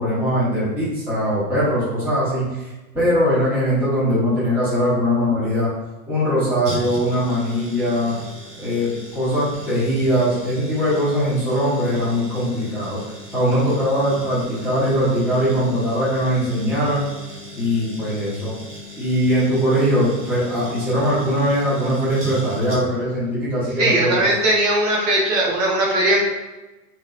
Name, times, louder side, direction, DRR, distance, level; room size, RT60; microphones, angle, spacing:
voice 1, 0.0-5.7 6.1-8.2 8.6-13.0 13.3-17.0 17.6-18.6 19.0-24.3, equal, 5° right, -12 dB, 0.9 m, -21 dB
sound 1, 6.6-23.1 23.4-23.5, equal, 25° right, 0.4 m, -38 dB
voice 2, 23.8-26.2, right 1 dB, 50° right, -3 dB, 0.7 m, -19 dB
3.2 x 2.8 x 2.3 m, 1.1 s
hypercardioid pair, 155°, 49 cm